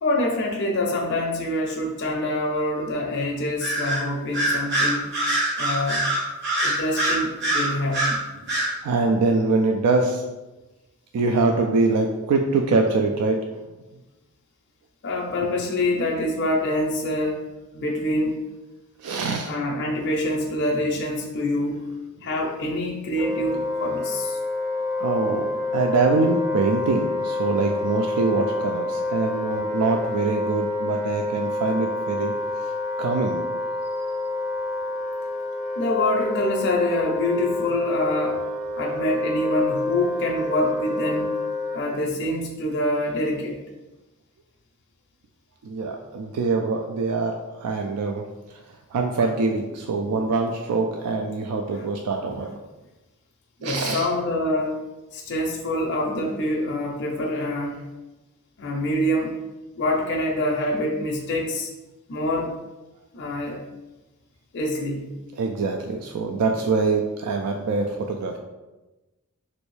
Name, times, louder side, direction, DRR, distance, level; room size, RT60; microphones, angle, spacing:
voice 1, 0.0-5.1 5.6-6.1 6.6-8.2 15.0-17.4 17.7-18.4 19.4-21.8 22.2-24.4 35.8-38.4 38.7-41.3 41.7-43.6 52.3-52.4 53.6-54.8 55.1-57.8 58.6-59.3 59.8-61.7 62.1-62.6 63.1-63.6 64.5-65.1, left 1 dB, 50° left, -1 dB, 0.4 m, -25 dB
Bird vocalization bird call bird song, 3.6-4.0 4.3-8.2 8.5-8.7, right 1 dB, 50° right, 1.1 m, -23 dB
voice 2, 8.8-10.2 11.1-13.5 19.0-19.5 25.0-32.3 32.6-32.7 33.0-33.4 45.6-48.2 48.5-48.6 48.9-52.5 53.6-54.1 65.4-68.4, right 3 dB, 85° right, 3 dB, 0.3 m, -24 dB
Wind instrument woodwind instrument, 23.2-41.8, left 2 dB, 5° right, 0.5 m, -28 dB
3.1 x 2.6 x 3.1 m, 1.1 s
head